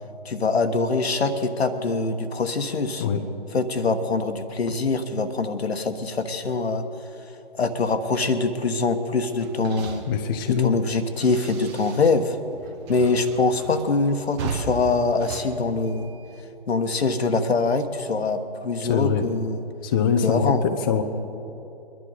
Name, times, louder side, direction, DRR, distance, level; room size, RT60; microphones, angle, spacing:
voice 1, 0.2-3.1 3.5-6.8 7.6-10.1 10.5-12.4 12.9-16.1 16.7-19.6 20.2-20.6, left 3 dB, 80° left, 8 dB, 1.3 m, -24 dB
sound 1, 9.3-12.3 12.5-16.4, right 4 dB, 25° right, 1.3 m, -37 dB
voice 2, 10.1-10.8 18.8-19.3 19.8-21.0, left 7 dB, 20° left, 5 dB, 0.6 m, -23 dB
23.0 x 11.0 x 4.1 m, 3.0 s
figure-of-eight pair, 145°, 31 cm